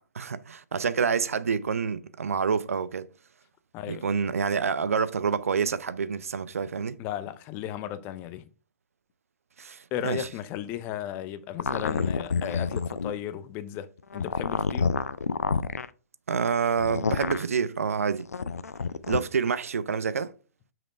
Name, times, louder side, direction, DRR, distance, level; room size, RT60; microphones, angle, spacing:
voice 1, 0.1-3.1 3.9-7.0 9.6-10.3 16.3-18.3 19.1-20.3, right 6 dB, 65° right, 0.5 m, -27 dB
voice 2, 3.7-4.1 7.0-8.5 9.9-13.9 14.1-14.9, left 11 dB, 25° left, 0.6 m, -35 dB
sound 1, 11.6-13.2 14.1-15.9 16.8-17.4 18.3-19.2, left 5 dB, 70° left, 0.4 m, -28 dB
5.9 x 5.1 x 4.3 m
figure-of-eight pair, 120°, 8 cm